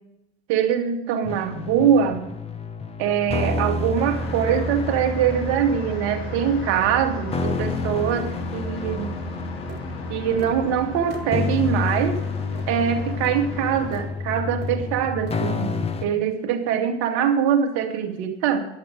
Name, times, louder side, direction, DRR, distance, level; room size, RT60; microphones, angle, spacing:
voice 1, 0.5-2.2 3.0-9.1 10.1-12.2 12.7-15.7 16.0-18.6, right 8 dB, 50° right, 6 dB, 1.7 m, -23 dB
sound 1, 1.2-16.1, left 3 dB, 20° left, 1.0 m, -29 dB
sound 2, 4.0-14.1, left 3 dB, 60° left, 3.2 m, -38 dB
sound 3, 9.7-9.9 10.4-10.6 11.1-11.3 11.9-12.0 12.6-12.7 13.2-13.4 13.9-14.1 14.6-14.8 15.3-15.4, right 6 dB, 30° right, 1.5 m, -40 dB
10.0 x 8.7 x 6.3 m, 0.87 s
figure-of-eight pair, 75°, 32 cm